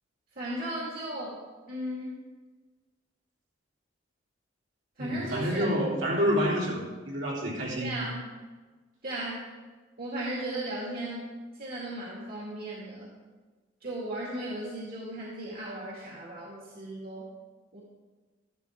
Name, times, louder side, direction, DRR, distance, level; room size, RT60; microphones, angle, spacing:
voice 1, 0.4-1.4 1.7-2.2 5.0-5.7 7.8-8.3 9.0-9.4 10.0-11.3 11.5-13.1 13.8-17.3 17.7-17.8, right 1 dB, 55° right, -5 dB, 2.4 m, -36 dB
voice 2, 5.0-8.0, equal, 70° right, -5 dB, 3.7 m, -28 dB
13.0 x 12.5 x 3.7 m, 1.3 s
head